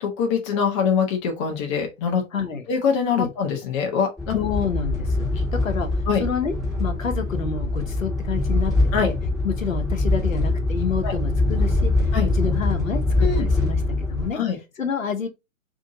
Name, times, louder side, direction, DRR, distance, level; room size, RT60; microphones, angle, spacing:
voice 1, 0.0-2.2 2.7-4.4 6.1-6.2 8.9-9.1 11.0-11.1 12.1-12.3 13.2-13.4 14.3-14.6, left 6 dB, 25° left, 0.6 m, -23 dB
voice 2, 2.3-2.6 3.2-3.3 4.3-5.2 5.5-5.9 6.2-8.7 9.0-9.1 9.4-12.1 12.3-14.4 14.8-15.3, left 6 dB, 80° left, 0.8 m, -28 dB
sound 1, 4.2-14.3, left 2 dB, ahead, 0.9 m, -23 dB
2.8 x 2.6 x 3.7 m
figure-of-eight pair, 115°, 40 cm